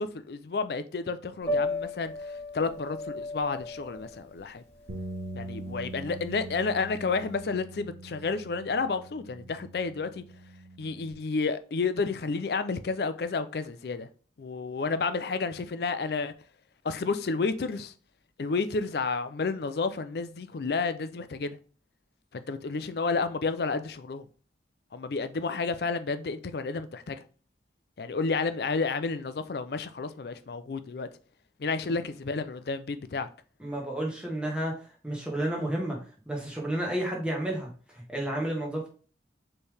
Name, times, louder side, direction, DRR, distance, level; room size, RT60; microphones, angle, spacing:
voice 1, 0.0-4.6 5.3-10.2 10.8-14.1 14.4-16.3 16.8-17.9 18.4-21.6 22.3-24.3 24.9-27.2 28.0-31.1 31.6-33.3, left 4 dB, 60° left, 0.4 m, -31 dB
Piano, 1.4-7.3, left 2 dB, 35° left, 1.6 m, -36 dB
sound 1, 4.9-11.1, right 1 dB, 70° right, 0.9 m, -42 dB
voice 2, 33.6-34.8 35.0-36.0 36.3-38.9, right 1 dB, 5° right, 1.2 m, -31 dB
4.4 x 3.3 x 3.4 m
head